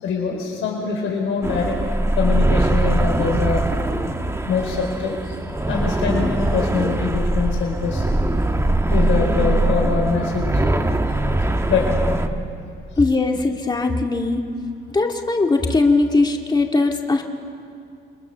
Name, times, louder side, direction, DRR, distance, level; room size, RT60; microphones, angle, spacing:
voice 1, 0.0-3.7 4.5-5.4 5.7-8.0 8.9-10.6 11.7-12.1, left 5 dB, 80° left, -1 dB, 4.4 m, -24 dB
sound 1, 1.4-12.3, right 1 dB, 15° right, 1.5 m, -21 dB
voice 2, 13.0-14.4 14.9-17.2, left 3 dB, 20° left, 2 dB, 2.0 m, -19 dB
29.0 x 21.5 x 6.9 m, 2.4 s
cardioid pair, 90°, 20 cm